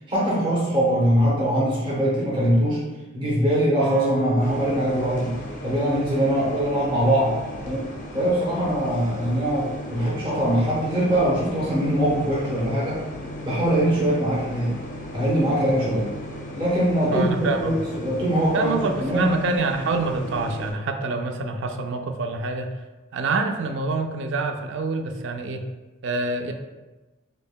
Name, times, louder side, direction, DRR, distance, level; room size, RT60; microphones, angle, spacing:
voice 1, 0.1-2.9 3.1-5.4 5.6-7.4 7.6-7.9 8.1-13.0 13.4-14.7 15.1-16.1 16.6-19.3, equal, 25° right, -6 dB, 0.7 m, -22 dB
sound 1, 3.8-7.6, right 3 dB, 85° right, 1.4 m, -34 dB
sound 2, 4.4-20.7, left 1 dB, 40° left, 0.5 m, -36 dB
voice 2, 17.1-17.8 18.5-22.7 23.1-25.6 26.0-26.5, right 3 dB, 60° right, 5 dB, 0.3 m, -26 dB
5.1 x 2.1 x 2.2 m, 1.1 s
head